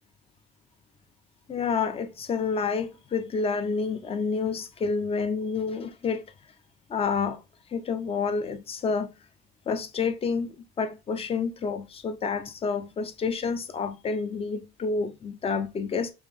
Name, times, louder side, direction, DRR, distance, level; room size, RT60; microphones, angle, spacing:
voice 1, 1.5-6.2 6.9-7.4 7.7-9.1 9.7-16.1, left 5 dB, 35° left, 0.6 m, -29 dB
5.4 x 2.0 x 3.3 m
cardioid pair, 110°, 17 cm